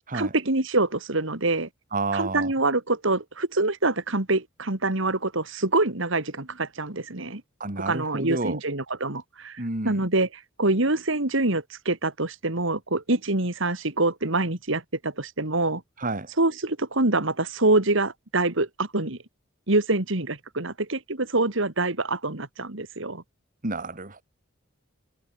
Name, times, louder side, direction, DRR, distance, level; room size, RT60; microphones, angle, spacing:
voice 1, 0.1-1.7 2.1-7.4 7.9-10.3 10.6-15.8 16.4-19.2 19.7-23.2, right 2 dB, 70° right, 3.0 m, -25 dB
voice 2, 1.9-2.5 7.6-8.6 9.6-10.0 16.0-16.3 23.6-24.2, right 2 dB, 45° right, 3.2 m, -30 dB
head